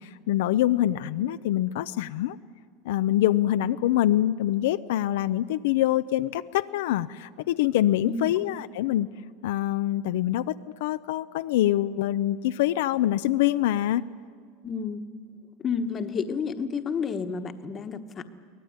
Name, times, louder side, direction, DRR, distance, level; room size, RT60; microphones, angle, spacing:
voice 1, 0.0-2.4 2.8-9.1 9.4-14.0, left 13 dB, 80° left, 12 dB, 0.5 m, -25 dB
voice 2, 8.1-8.4 14.6-15.0 15.6-18.3, left 5 dB, 25° left, 8 dB, 1.2 m, -30 dB
23.5 x 18.5 x 9.5 m, 2.1 s
supercardioid pair, 145°, 0 cm